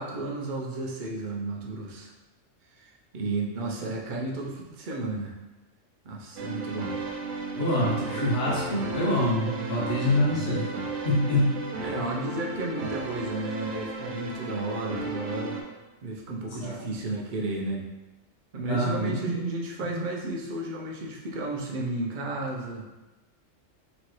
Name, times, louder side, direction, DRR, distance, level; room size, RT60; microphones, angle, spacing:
voice 1, 0.0-2.1 2.7-5.4 6.0-7.0 8.1-8.3 8.7-8.8 9.9-10.5 11.8-15.6 16.0-17.9 18.5-22.9, right 2 dB, 50° right, -1 dB, 0.7 m, -33 dB
sound 1, 6.4-15.6, right 3 dB, 85° right, 1.0 m, -34 dB
voice 2, 7.6-10.7 11.0-11.6 16.6-16.8 18.7-19.5, left 1 dB, 55° left, -5 dB, 1.1 m, -26 dB
4.1 x 3.0 x 3.1 m, 1.1 s
omnidirectional pair, 1.3 m